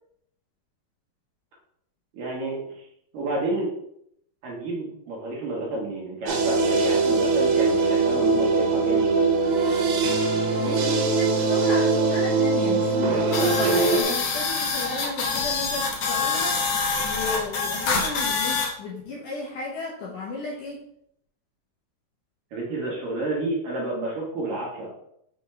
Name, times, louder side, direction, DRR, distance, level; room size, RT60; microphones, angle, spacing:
voice 1, 2.1-2.9 3.1-3.7 4.4-9.1 22.5-24.9, right 2 dB, 65° right, -4 dB, 2.8 m, -30 dB
sound 1, 6.3-14.0, right 4 dB, 85° right, 3.0 m, -22 dB
voice 2, 10.6-20.9, left 3 dB, 70° left, -4 dB, 2.1 m, -34 dB
sound 2, 13.3-18.7, left 4 dB, 85° left, 1.3 m, -26 dB
6.6 x 4.1 x 3.5 m, 0.72 s
omnidirectional pair, 4.5 m